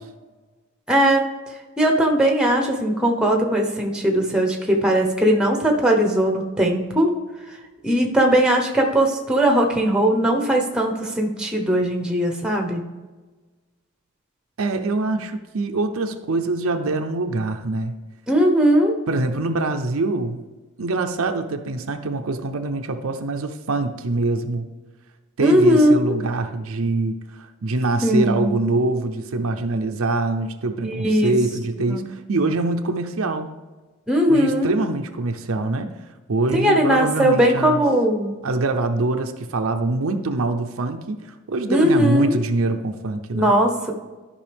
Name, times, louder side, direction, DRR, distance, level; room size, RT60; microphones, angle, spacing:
voice 1, 0.9-1.3 1.8-7.1 7.8-12.8 18.3-19.0 25.4-25.9 28.0-28.6 30.8-31.3 31.9-32.1 34.1-34.7 36.5-38.4 41.7-42.4 43.3-43.9, right 1 dB, 5° right, 2 dB, 1.0 m, -19 dB
voice 2, 14.6-18.0 19.1-20.4 20.8-24.7 25.4-33.5 34.3-35.9 36.3-37.9 38.4-43.5, right 2 dB, 70° right, 6 dB, 0.6 m, -24 dB
12.5 x 5.4 x 3.5 m, 1.3 s
head